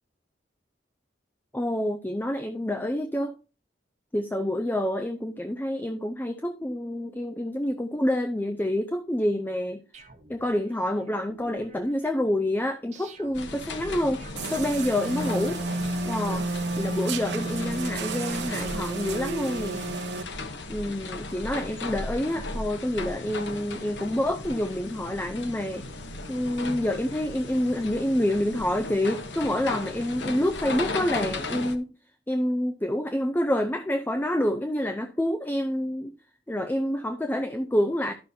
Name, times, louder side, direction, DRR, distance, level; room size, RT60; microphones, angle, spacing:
voice 1, 1.5-3.3 4.1-9.8 10.3-14.2 14.5-15.6 16.0-16.5 16.8-19.8 20.7-25.9 26.3-31.9 32.3-36.1 36.5-38.1, left 1 dB, 10° left, 8 dB, 0.6 m, -27 dB
sound 1, 9.9-15.7, right 2 dB, 40° right, 1.4 m, -52 dB
sound 2, 13.3-31.8, left 2 dB, 80° left, 1.1 m, -36 dB
sound 3, 14.4-20.2, right 2 dB, 70° right, 1.0 m, -31 dB
12.5 x 6.1 x 2.7 m, 0.34 s
head